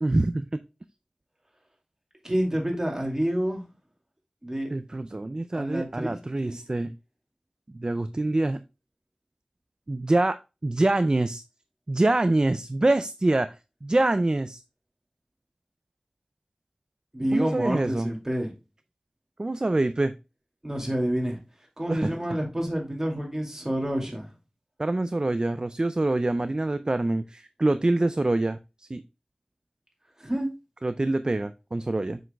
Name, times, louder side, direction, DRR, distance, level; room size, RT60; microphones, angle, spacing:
voice 1, 0.0-0.5 4.7-6.9 7.7-8.6 9.9-11.4 11.9-14.6 17.3-18.1 19.4-20.1 21.9-22.1 24.8-29.0 30.8-32.2, right 2 dB, 40° right, 0.3 m, -25 dB
voice 2, 2.2-3.6 4.4-4.7 5.5-6.6 17.1-18.5 20.6-21.4 21.8-24.3 30.2-30.5, right 1 dB, 20° right, 2.3 m, -28 dB
6.8 x 6.1 x 2.2 m
wide cardioid pair, 55°, 2 cm